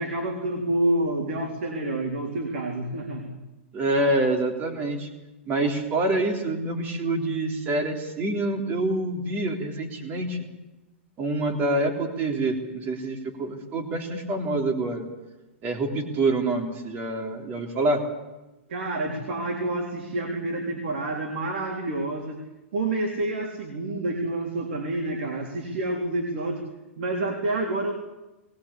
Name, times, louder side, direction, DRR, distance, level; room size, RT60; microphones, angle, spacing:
voice 1, 0.0-3.4 18.7-22.4 22.7-26.6 27.0-27.9, right 2 dB, 65° right, 1 dB, 3.9 m, -28 dB
voice 2, 3.7-5.1 5.5-10.4 11.2-15.1 15.6-18.0, right 2 dB, 30° right, 3 dB, 3.6 m, -26 dB
20.5 x 20.5 x 8.6 m, 1.0 s
hypercardioid pair, 140°, 7 cm